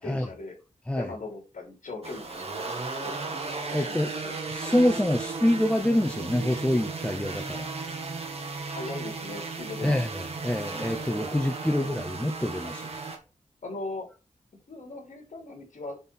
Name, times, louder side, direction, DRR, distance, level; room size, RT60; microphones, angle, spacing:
voice 1, 0.0-0.5 0.9-3.4 3.7-4.4 8.7-10.0 13.6-14.1 14.7-16.0, left 2 dB, 70° left, 3.0 m, -39 dB
sound 1, 2.0-13.2, right 4 dB, 50° right, 1.7 m, -35 dB
voice 2, 3.7-4.1 4.5-7.7 9.8-12.9, left 1 dB, 10° left, 0.6 m, -26 dB
7.1 x 4.2 x 5.8 m
wide cardioid pair, 155°, 14 cm